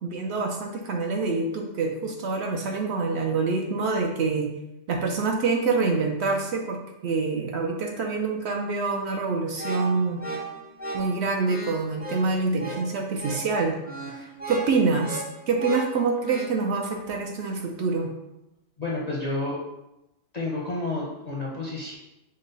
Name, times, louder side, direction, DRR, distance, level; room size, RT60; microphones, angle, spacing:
voice 1, 0.0-4.5 4.9-10.2 10.9-13.8 14.2-18.1, right 4 dB, 65° right, 2 dB, 0.7 m, -26 dB
sound 1, 9.5-16.5, right 2 dB, 15° right, 0.3 m, -36 dB
voice 2, 18.8-19.6 20.3-21.9, left 2 dB, 45° left, -3 dB, 0.5 m, -30 dB
5.3 x 2.0 x 3.9 m, 0.92 s
omnidirectional pair, 1.4 m